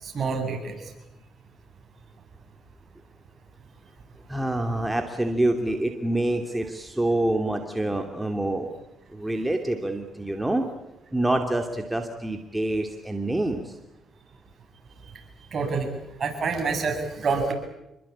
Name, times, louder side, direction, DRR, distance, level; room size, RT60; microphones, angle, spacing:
voice 1, 0.0-0.8 15.5-15.9 16.2-17.5, right 4 dB, 45° right, 3 dB, 8.0 m, -27 dB
voice 2, 4.3-8.7 9.1-10.6 11.1-13.8, right 1 dB, 10° right, 4 dB, 2.7 m, -26 dB
28.0 x 22.5 x 8.8 m, 0.92 s
cardioid pair, 90°, 0 cm